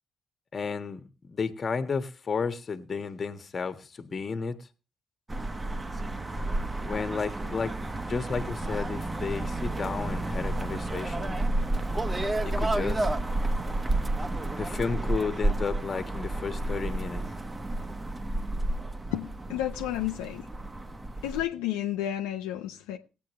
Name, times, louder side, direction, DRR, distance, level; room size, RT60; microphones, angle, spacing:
voice 1, 0.5-4.6 6.8-7.7 8.0-11.4 12.4-13.1 14.5-17.2, left 5 dB, 45° left, 1.5 m, -32 dB
sound 1, 5.3-21.4, right 2 dB, 25° right, 1.2 m, -31 dB
voice 2, 19.1-20.5 21.2-23.0, left 12 dB, 80° left, 0.8 m, -31 dB
19.5 x 8.2 x 3.2 m
hypercardioid pair, 45°, 0 cm